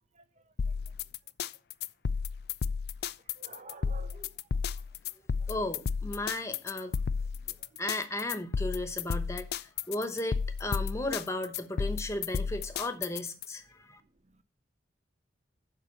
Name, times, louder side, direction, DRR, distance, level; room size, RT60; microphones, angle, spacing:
voice 1, 0.1-0.7 3.2-4.8 7.4-7.8 14.0-14.4, right 3 dB, 40° right, 0.6 m, -53 dB
sound 1, 0.6-13.4, left 6 dB, 60° left, 0.3 m, -33 dB
voice 2, 5.5-7.0 7.5-14.0, left 1 dB, 15° left, 0.9 m, -35 dB
7.5 x 5.3 x 6.4 m
head